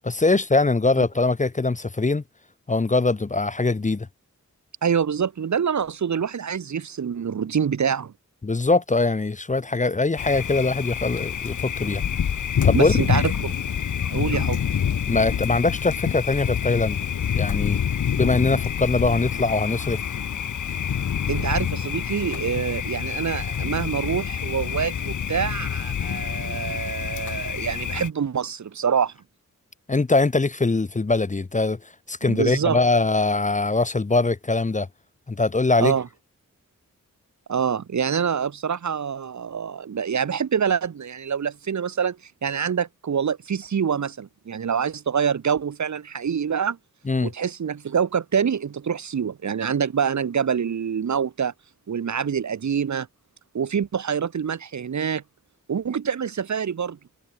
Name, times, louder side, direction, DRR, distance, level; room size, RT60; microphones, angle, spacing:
voice 1, 0.0-2.2 2.7-4.1 8.4-12.0 12.6-13.2 15.1-17.0 17.3-17.8 18.2-20.0 29.9-31.8 32.1-34.9 35.3-35.9 47.1-47.3, left 3 dB, 25° left, 0.9 m, -22 dB
voice 2, 4.8-8.1 12.7-13.5 14.1-14.6 21.3-29.1 32.3-32.8 35.8-36.1 37.5-42.2 42.4-46.8 47.2-51.5 51.9-53.1 53.5-55.2 55.7-57.0, right 7 dB, 65° right, 1.1 m, -26 dB
Thunder, 10.2-28.1, left 8 dB, 70° left, 0.9 m, -27 dB
wide cardioid pair, 120°, 31 cm